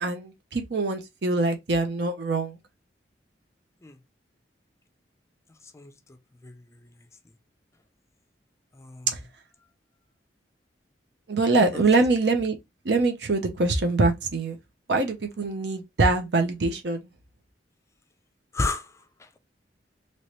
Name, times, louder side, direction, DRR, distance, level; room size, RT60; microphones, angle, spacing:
voice 1, 0.0-2.6 9.1-9.2 11.3-12.6 12.8-14.6 14.9-17.0, right 3 dB, 70° right, 0.7 m, -24 dB
voice 2, 8.7-9.1 11.7-11.8 18.5-18.9 19.2-19.4, left 3 dB, 15° left, 0.4 m, -31 dB
3.0 x 3.0 x 2.9 m
head